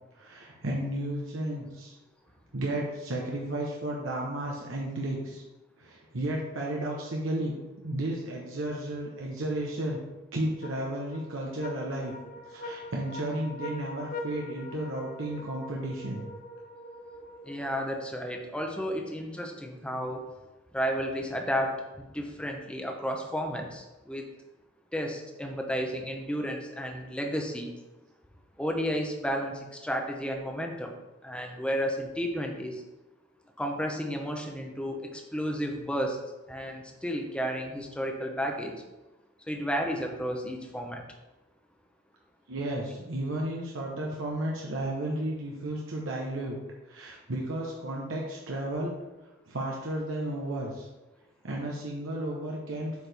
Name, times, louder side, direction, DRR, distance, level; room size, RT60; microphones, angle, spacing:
voice 1, 0.1-1.9 2.5-5.4 5.8-10.0 10.3-12.1 12.4-16.3 42.5-46.6 46.9-48.9 49.5-50.9 51.4-53.1, right 1 dB, 80° right, -2 dB, 1.0 m, -33 dB
sound 1, 10.6-18.2, left 1 dB, 45° left, 0.7 m, -43 dB
voice 2, 17.4-20.2 20.7-24.3 24.9-27.7 28.6-30.9 31.2-32.8 33.6-36.2 36.5-38.7 39.5-41.0, equal, 5° left, 2 dB, 0.8 m, -32 dB
8.1 x 4.7 x 3.4 m, 1.1 s
head